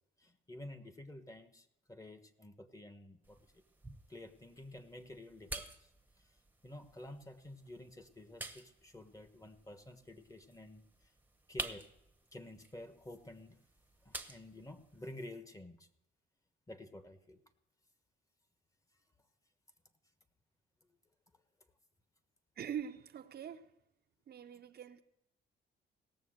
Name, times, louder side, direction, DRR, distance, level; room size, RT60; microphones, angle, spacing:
voice 1, 0.2-3.4 4.1-5.9 6.6-10.8 11.5-11.9 12.3-13.6 14.0-15.9 16.7-17.4, left 1 dB, 15° left, 1.2 m, -51 dB
sound 1, 3.2-15.2, right 2 dB, 10° right, 0.9 m, -50 dB
voice 2, 22.6-23.7 24.3-25.0, right 9 dB, 55° right, 0.7 m, -43 dB
17.5 x 6.9 x 6.4 m
cardioid pair, 90°, 20 cm